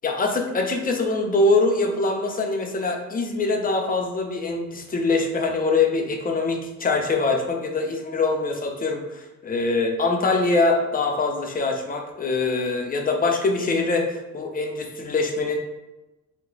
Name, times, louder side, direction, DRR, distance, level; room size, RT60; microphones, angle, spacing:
voice 1, 0.0-15.6, left 3 dB, 30° left, 2 dB, 0.6 m, -23 dB
3.0 x 2.2 x 3.8 m, 1.0 s
cardioid pair, 90°, 30 cm